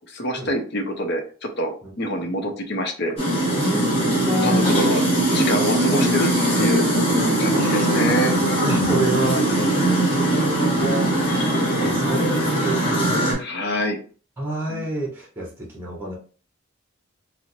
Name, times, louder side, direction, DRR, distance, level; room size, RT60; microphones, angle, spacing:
voice 1, 0.1-3.2 4.4-5.0 5.3-6.3 6.6-6.8 7.4-8.3 13.4-14.0 14.7-14.9, equal, 50° left, 3 dB, 0.7 m, -25 dB
sound 1, 3.2-13.3, right 1 dB, 25° left, 1.3 m, -20 dB
voice 2, 3.6-5.0 5.3-5.6 5.9-6.1 7.5-7.9 8.6-13.4 14.4-15.5 15.7-16.2, right 1 dB, 10° right, -2 dB, 0.8 m, -29 dB
4.3 x 2.0 x 2.6 m, 0.39 s
head